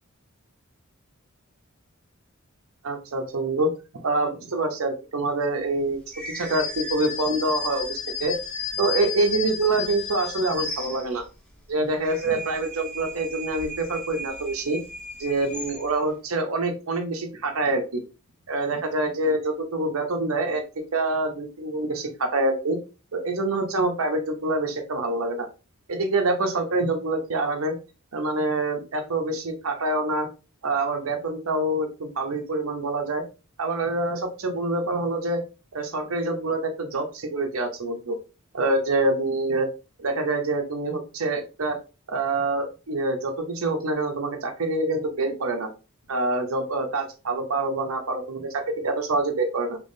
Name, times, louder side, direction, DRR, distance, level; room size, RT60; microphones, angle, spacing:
voice 1, 2.8-3.7 4.0-8.4 8.8-11.2 11.7-14.8 15.2-18.0 18.5-20.6 20.9-22.8 23.1-25.5 25.9-27.7 28.1-30.3 30.6-33.2 33.6-35.4 35.7-38.2 38.5-39.7 40.0-41.8 42.1-45.7 46.1-49.8, right 2 dB, 75° right, 5 dB, 0.8 m, -26 dB
sound 1, 6.1-11.4 11.9-16.1, left 5 dB, 5° left, 0.7 m, -34 dB
3.6 x 3.0 x 2.6 m, 0.31 s
head